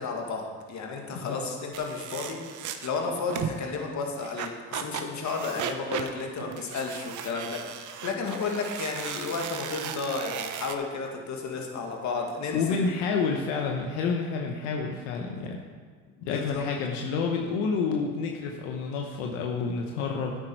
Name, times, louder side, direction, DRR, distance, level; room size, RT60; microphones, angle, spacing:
voice 1, 0.0-12.8 16.2-16.6, left 4 dB, 50° left, 1 dB, 2.1 m, -33 dB
sound 1, 1.7-3.6 4.2-10.8, right 9 dB, 55° right, 0.9 m, -36 dB
voice 2, 12.5-15.6 16.2-20.4, left 5 dB, 90° left, 1 dB, 1.1 m, -29 dB
10.5 x 8.6 x 4.6 m, 1.5 s
supercardioid pair, 85°, 37 cm